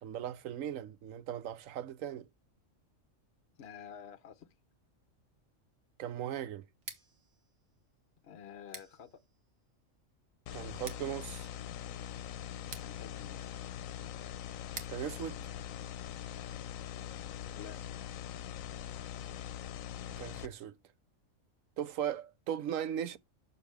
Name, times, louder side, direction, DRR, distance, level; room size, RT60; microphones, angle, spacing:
voice 1, 0.0-2.3 6.0-6.6 10.5-11.5 14.9-15.5 20.2-20.7 21.8-23.2, right 10 dB, 85° right, 1.1 m, -38 dB
voice 2, 3.6-4.5 8.2-9.2 12.8-13.6 17.5-17.8, left 8 dB, 60° left, 0.9 m, -50 dB
Scissors, 6.7-16.5, right 4 dB, 65° right, 1.7 m, -53 dB
sound 1, 10.5-20.5, left 10 dB, 85° left, 1.0 m, -42 dB
6.8 x 6.8 x 3.3 m
omnidirectional pair, 1.4 m